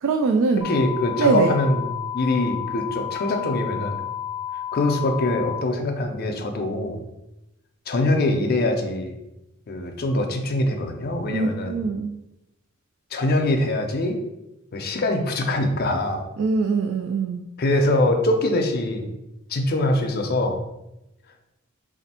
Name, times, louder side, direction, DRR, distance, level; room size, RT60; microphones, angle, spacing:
voice 1, 0.0-0.7 1.2-1.6 11.3-12.1 16.4-17.4, right 4 dB, 70° right, 5 dB, 0.3 m, -22 dB
voice 2, 0.6-4.0 4.7-7.0 7.9-9.2 9.7-11.8 13.1-14.2 14.7-16.2 17.6-19.2 19.5-20.6, left 1 dB, 50° left, 4 dB, 0.5 m, -23 dB
sound 1, 0.6-5.6, left 10 dB, 15° right, 0.7 m, -31 dB
3.3 x 2.5 x 4.2 m, 0.92 s
head